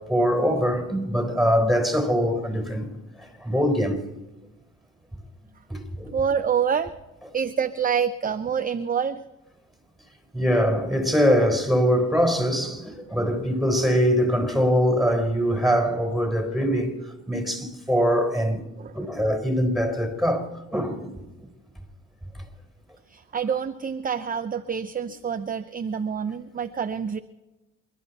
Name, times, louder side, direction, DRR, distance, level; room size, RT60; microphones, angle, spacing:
voice 1, 0.1-2.9 3.2-4.0 5.7-6.1 10.3-17.0 17.3-18.6 18.9-21.1, equal, ahead, 4.2 m, -23 dB
voice 2, 6.1-6.9 7.3-9.2 18.8-19.0 19.3-19.4 23.1-27.2, right 7 dB, 30° right, 0.6 m, -27 dB
27.5 x 11.5 x 4.2 m
cardioid pair, 90°, 30 cm